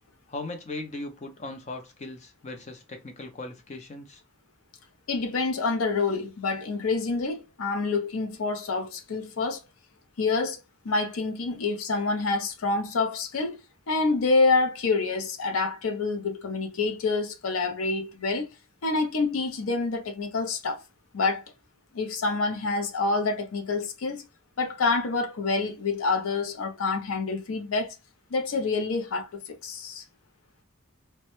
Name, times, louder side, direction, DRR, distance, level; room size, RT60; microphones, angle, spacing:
voice 1, 0.3-4.2, left 2 dB, 35° left, 0.5 m, -38 dB
voice 2, 5.1-9.6 10.2-10.6 10.8-13.6 13.9-18.5 18.8-20.8 21.1-21.4 21.9-24.2 24.6-28.0 28.3-30.0, left 3 dB, 90° left, 0.5 m, -27 dB
2.1 x 2.0 x 2.9 m
head